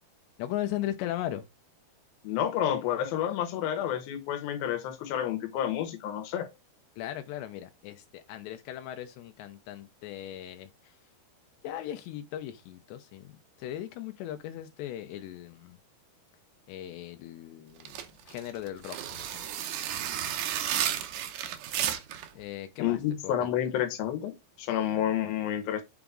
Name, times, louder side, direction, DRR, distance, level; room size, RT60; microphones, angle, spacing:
voice 1, 0.4-1.4 7.0-11.0 11.6-15.8 16.7-19.7 22.4-23.0 23.2-23.5, left 12 dB, 85° left, 2.9 m, -38 dB
voice 2, 2.2-6.5 22.8-24.3 24.6-25.8, left 10 dB, 70° left, 2.8 m, -29 dB
sound 1, 17.8-22.3, right 10 dB, 85° right, 1.8 m, -32 dB
7.0 x 5.1 x 3.6 m
omnidirectional pair, 4.9 m